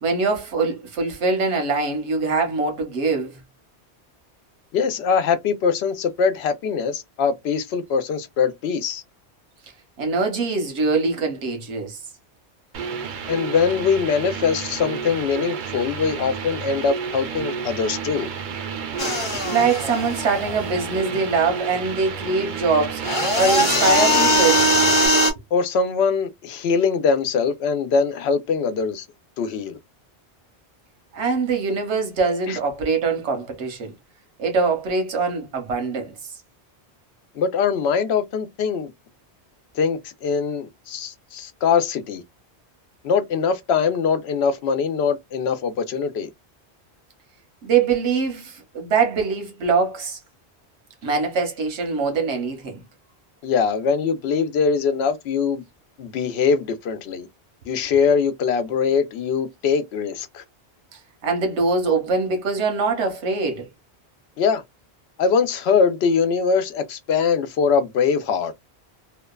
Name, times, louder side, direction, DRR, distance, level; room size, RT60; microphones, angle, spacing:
voice 1, 0.0-3.4 10.0-12.0 19.3-23.0 23.3-24.7 31.1-33.9 34.4-36.1 47.6-50.2 51.0-52.8 61.2-63.7, right 4 dB, 85° right, 1.1 m, -23 dB
voice 2, 4.7-9.0 13.3-18.3 25.5-29.0 29.4-29.8 32.5-32.6 37.4-38.9 39.8-42.2 43.0-46.3 53.4-55.6 56.0-57.3 57.7-60.4 64.4-64.6 65.2-68.5, left 6 dB, 75° left, 0.8 m, -22 dB
sound 1, 12.7-25.1, right 6 dB, 55° right, 0.6 m, -31 dB
sound 2, 19.0-21.0 23.0-25.3, equal, 30° left, 0.8 m, -20 dB
2.8 x 2.1 x 2.2 m
omnidirectional pair, 1.1 m